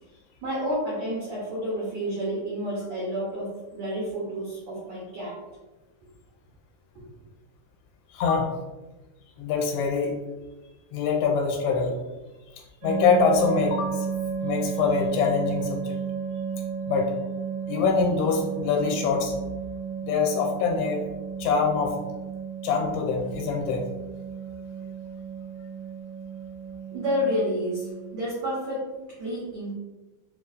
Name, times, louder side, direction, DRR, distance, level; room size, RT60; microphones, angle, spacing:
voice 1, 0.4-5.4 26.9-28.9 29.2-29.8, equal, 90° right, -7 dB, 1.5 m, -30 dB
voice 2, 8.1-8.5 9.4-10.1 10.9-11.9 12.8-14.1 14.4-16.0 16.9-17.1 17.7-19.3 20.0-21.1 21.4-22.0 22.6-23.8, left 5 dB, 90° left, 1 dB, 2.7 m, -24 dB
sound 1, 12.8-28.1, right 6 dB, 55° right, 2.1 m, -33 dB
6.7 x 2.4 x 2.6 m, 1.1 s
omnidirectional pair, 4.7 m